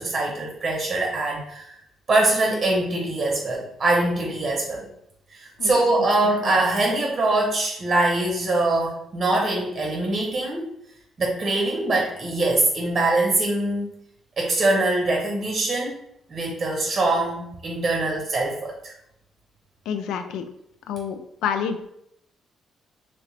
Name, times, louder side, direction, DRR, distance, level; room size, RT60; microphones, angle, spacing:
voice 1, 0.0-1.8 2.1-4.9 5.3-10.7 11.2-13.9 14.4-16.0 16.3-18.9, right 2 dB, 40° right, -1 dB, 0.7 m, -23 dB
voice 2, 19.9-20.5 20.9-21.9, left 7 dB, 85° left, 8 dB, 0.3 m, -28 dB
3.0 x 2.8 x 3.1 m, 0.76 s
cardioid pair, 90°, 0 cm